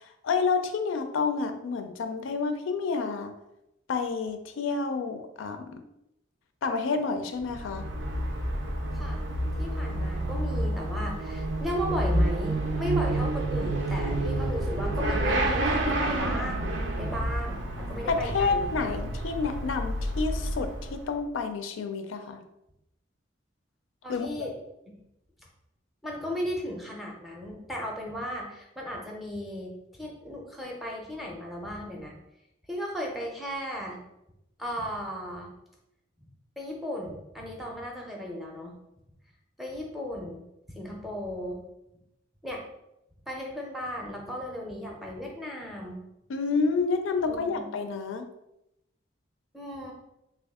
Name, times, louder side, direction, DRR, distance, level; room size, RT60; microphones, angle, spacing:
voice 1, 0.0-3.3 3.9-5.8 6.6-7.8 18.1-22.4 24.1-24.5 46.3-48.3, left 4 dB, 85° left, 7 dB, 0.4 m, -29 dB
Motorcycle / Accelerating revving vroom, 7.4-21.2, right 1 dB, 75° right, 0.5 m, -29 dB
voice 2, 8.9-9.2 9.6-16.7 17.0-18.9 24.0-24.6 24.9-25.0 26.0-32.2 32.7-34.0 34.6-35.5 36.2-36.3 36.6-38.8 39.6-40.4 40.7-41.6 42.4-42.6 43.3-46.0 47.3-47.7 49.5-49.9, equal, ahead, -1 dB, 0.5 m, -35 dB
3.4 x 2.3 x 3.5 m, 0.87 s
head